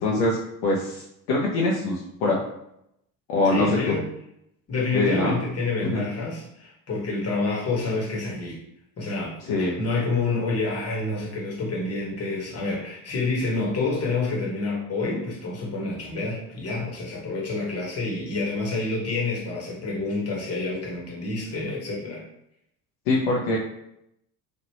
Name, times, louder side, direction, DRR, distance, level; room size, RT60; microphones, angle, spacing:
voice 1, 0.0-0.4 0.6-2.4 3.3-3.9 4.9-5.4 5.8-6.0 9.5-9.8 23.1-23.6, left 2 dB, 60° left, -3 dB, 0.8 m, -23 dB
voice 2, 3.4-4.1 4.7-8.6 9.0-22.2, left 3 dB, 30° left, -3 dB, 1.3 m, -28 dB
3.1 x 2.5 x 2.9 m, 0.79 s
hypercardioid pair, 65°, 47 cm